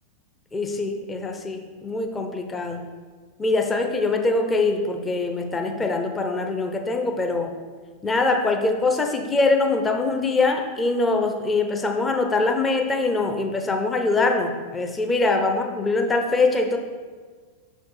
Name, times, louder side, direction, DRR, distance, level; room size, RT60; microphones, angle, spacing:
voice 1, 0.5-2.8 3.4-7.5 8.0-16.8, left 3 dB, 15° left, 4 dB, 0.7 m, -23 dB
5.9 x 4.5 x 4.6 m, 1.5 s
figure-of-eight pair, 90°, 0 cm